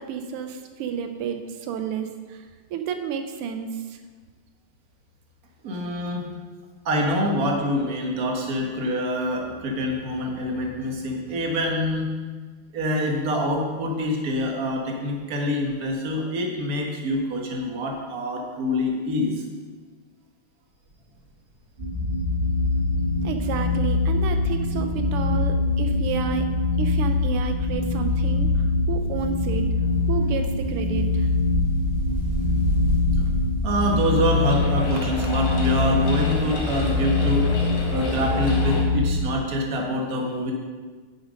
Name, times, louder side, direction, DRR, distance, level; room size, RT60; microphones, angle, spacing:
voice 1, 0.0-4.0 23.2-26.5 26.8-29.7 30.1-31.3, right 7 dB, 85° right, 7 dB, 1.7 m, -31 dB
voice 2, 5.6-6.3 6.9-12.1 12.7-19.4 29.9-30.0 33.6-37.5 37.9-40.5, left 1 dB, 45° right, 1 dB, 1.8 m, -25 dB
Wind, 20.9-21.2 21.6-21.7 21.9-25.5 25.8-37.9 38.2-38.3, right 2 dB, 65° right, 2.7 m, -34 dB
sound 1, 21.8-39.2, left 3 dB, 30° right, 1.6 m, -23 dB
sound 2, 33.7-38.8, left 2 dB, 70° left, 2.6 m, -34 dB
10.5 x 7.3 x 5.2 m, 1.4 s
omnidirectional pair, 2.4 m